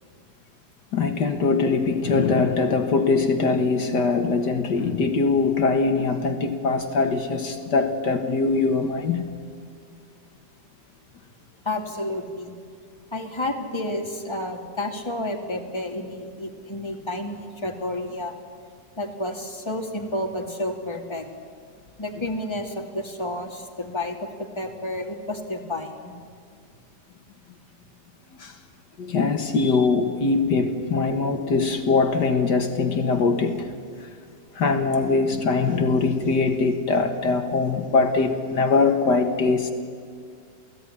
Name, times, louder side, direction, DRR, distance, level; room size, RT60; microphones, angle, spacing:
voice 1, 0.9-9.2 28.4-28.5 29.0-33.7 34.0-34.1 34.6-39.7, left 4 dB, 70° left, 6 dB, 2.1 m, -22 dB
voice 2, 11.6-12.6 13.1-18.3 19.0-21.3 22.0-26.1, left 1 dB, 15° left, 2 dB, 2.7 m, -30 dB
28.5 x 17.5 x 10.0 m, 2.2 s
omnidirectional pair, 1.9 m